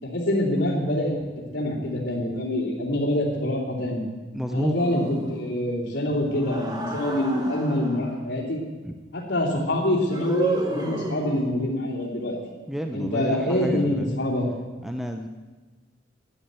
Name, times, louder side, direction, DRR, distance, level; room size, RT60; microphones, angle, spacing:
voice 1, 0.0-4.0 4.5-8.6 9.1-12.4 12.9-14.5, left 1 dB, 70° left, -8 dB, 2.9 m, -25 dB
voice 2, 4.3-4.7 8.8-8.9 12.7-14.1 14.8-15.3, equal, ahead, 4 dB, 0.6 m, -30 dB
sound 1, 4.8-5.6 6.3-8.1 10.1-11.6, right 2 dB, 20° right, 1.4 m, -32 dB
11.5 x 9.4 x 8.1 m, 1.3 s
head